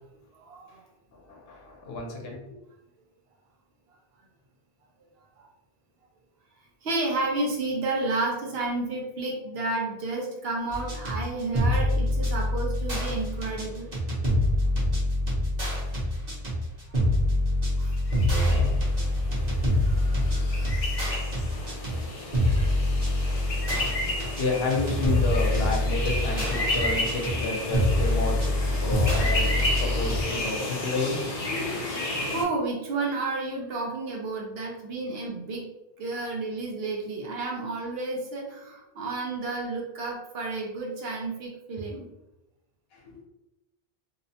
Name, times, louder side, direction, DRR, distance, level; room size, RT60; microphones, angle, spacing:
voice 1, 0.4-0.9 5.4-5.5 6.8-13.9 17.8-18.0 19.3-19.6 32.3-35.7 36.0-42.1, right 2 dB, 75° right, -1 dB, 0.8 m, -31 dB
voice 2, 1.1-2.6 23.6-28.4 28.7-31.8 42.9-43.2, left 3 dB, 75° left, 0 dB, 0.9 m, -31 dB
sound 1, 10.7-30.2, left 1 dB, 45° right, 1.0 m, -26 dB
sound 2, 17.9-32.4, left 1 dB, 45° left, 0.5 m, -32 dB
2.8 x 2.0 x 2.7 m, 0.92 s
omnidirectional pair, 1.0 m